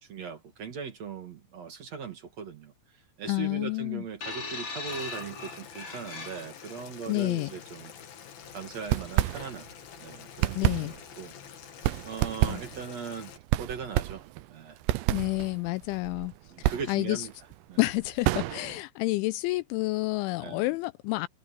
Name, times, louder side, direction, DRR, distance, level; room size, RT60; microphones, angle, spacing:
voice 1, 0.0-2.7 3.2-7.9 8.5-9.7 10.0-11.3 12.0-14.8 16.5-17.3 17.7-17.8 20.4-20.7, right 6 dB, 45° right, 2.4 m, -39 dB
voice 2, 3.3-4.0 7.1-7.5 10.6-10.9 12.5-12.6 15.1-16.3 16.6-17.3 17.8-21.3, left 22 dB, 85° left, 3.0 m, -29 dB
sound 1, 4.2-6.8 7.7-7.8, left 4 dB, 35° left, 7.0 m, -39 dB
Boiling, 4.9-13.4, left 8 dB, 55° left, 3.6 m, -47 dB
sound 2, 8.8-9.9 10.2-18.8, right 16 dB, 80° right, 2.8 m, -30 dB
omnidirectional pair, 5.5 m